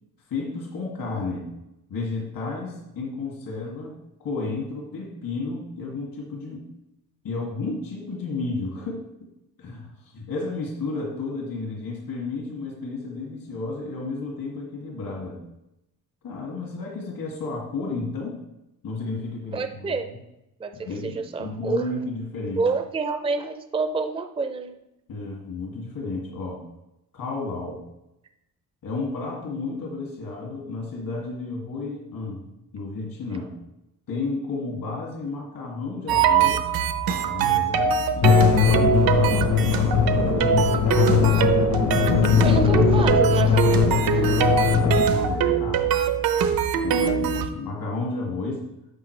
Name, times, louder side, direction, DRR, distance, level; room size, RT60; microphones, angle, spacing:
voice 1, 0.3-1.5 1.9-6.6 7.2-9.1 9.6-15.4 16.2-18.4 18.8-20.0 20.8-22.7 25.1-26.6 27.1-27.8 28.8-32.5 32.7-33.5 34.1-36.6 37.1-41.3 44.1-45.9 46.7-48.6, left 3 dB, 70° left, -2 dB, 2.3 m, -32 dB
voice 2, 19.5-20.1 20.6-21.9 22.6-24.7 42.4-44.1, right 4 dB, 15° right, 7 dB, 0.5 m, -28 dB
sound 1, 36.1-47.5, right 7 dB, 75° right, 0.8 m, -22 dB
sound 2, 38.2-45.1, left 7 dB, 50° left, 0.9 m, -20 dB
11.5 x 6.5 x 3.3 m, 0.89 s
cardioid pair, 135°, 35 cm